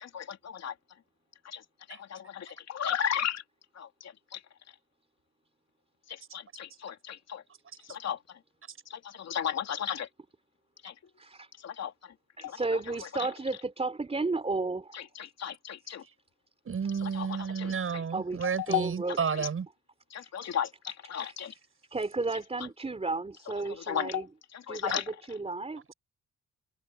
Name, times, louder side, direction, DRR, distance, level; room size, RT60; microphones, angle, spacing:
voice 1, 0.0-0.7 1.4-1.6 2.0-3.4 3.7-4.4 6.1-7.4 7.9-8.2 8.9-10.1 10.8-10.9 11.6-11.9 12.4-13.1 14.9-16.0 17.1-17.3 17.6-17.7 18.7-18.8 19.4-19.5 20.1-21.5 23.9-24.3 24.5-25.0, left 9 dB, 60° left, 3.3 m, -34 dB
voice 2, 11.2-11.5 12.4-15.0 15.8-16.0 18.1-19.2 21.1-21.6 21.9-24.3 24.7-25.9, right 3 dB, 20° right, 3.8 m, -33 dB
voice 3, 16.6-19.7 24.9-25.0, right 6 dB, 45° right, 7.6 m, -31 dB
open air
cardioid pair, 90°, 30 cm